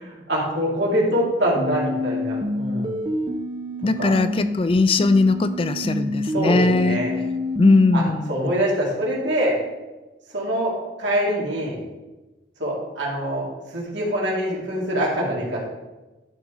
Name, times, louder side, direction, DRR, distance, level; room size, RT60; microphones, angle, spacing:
voice 1, 0.0-2.9 4.0-4.1 6.3-7.1 7.9-8.0 8.3-9.5 10.3-10.7 11.0-11.8 12.6-13.4 13.7-15.6, equal, 75° right, -3 dB, 2.5 m, -24 dB
sound 1, 1.6-4.6 5.0-8.0, left 1 dB, 25° right, 0.7 m, -27 dB
voice 2, 3.8-7.1 7.6-8.3, left 3 dB, 30° left, 12 dB, 0.3 m, -19 dB
11.5 x 5.0 x 3.7 m, 1.1 s
head